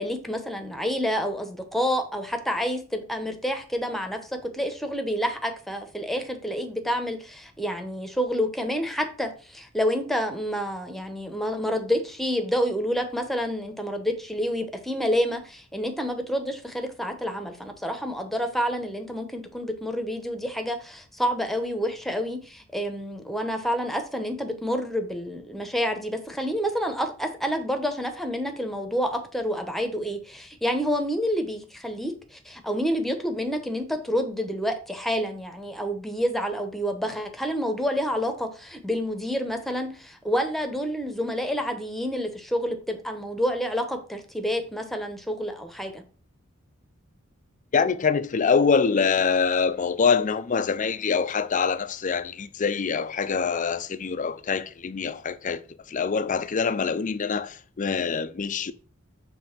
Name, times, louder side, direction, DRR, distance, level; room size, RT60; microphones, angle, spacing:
voice 1, 0.0-4.2 4.5-46.0, equal, ahead, 0.9 m, -28 dB
voice 2, 47.7-55.6 55.9-58.7, left 5 dB, 40° left, 0.5 m, -24 dB
6.9 x 3.4 x 5.8 m
head